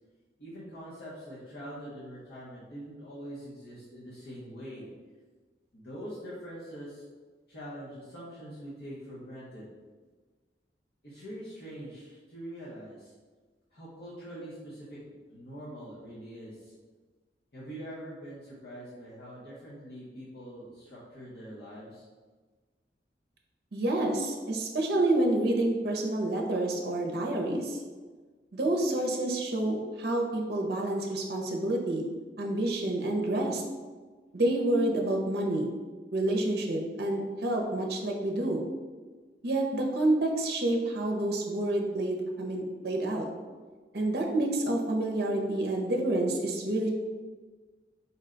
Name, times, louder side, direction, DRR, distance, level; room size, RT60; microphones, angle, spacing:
voice 1, 0.4-4.9 5.7-7.1 7.5-9.7 11.0-13.1 13.7-15.0 15.3-16.7 17.5-22.0, equal, 65° left, -9 dB, 1.0 m, -44 dB
voice 2, 23.7-27.8 28.5-32.0 32.4-33.6 34.3-35.7 36.1-38.6 39.4-43.3 43.9-46.9, right 1 dB, 60° right, 0 dB, 0.6 m, -28 dB
4.3 x 2.2 x 3.8 m, 1.4 s
head